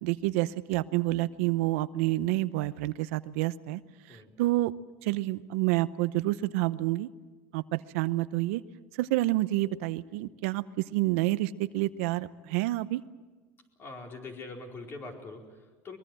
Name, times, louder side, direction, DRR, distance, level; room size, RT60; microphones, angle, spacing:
voice 1, 0.0-3.8 4.1-4.7 5.0-7.1 7.5-8.6 9.0-13.0, right 17 dB, 85° right, 14 dB, 0.8 m, -28 dB
voice 2, 13.8-16.0, left 3 dB, 35° left, 2 dB, 4.5 m, -43 dB
23.0 x 22.5 x 7.7 m, 1.3 s
supercardioid pair, 130°, 7 cm